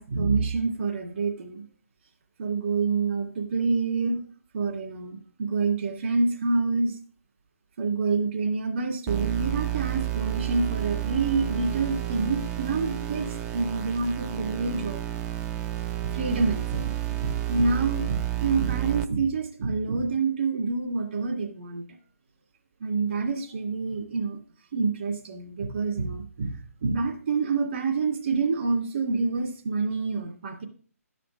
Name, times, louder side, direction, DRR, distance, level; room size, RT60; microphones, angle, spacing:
voice 1, 0.0-1.6 2.4-4.2 4.5-7.0 7.8-15.0 16.0-21.8 22.8-24.4 24.7-30.6, right 4 dB, 50° right, 1 dB, 2.3 m, -27 dB
sound 1, 9.1-19.0, right 14 dB, 10° right, 0.3 m, -30 dB
13.0 x 5.1 x 5.2 m, 0.42 s
figure-of-eight pair, 145°, 8 cm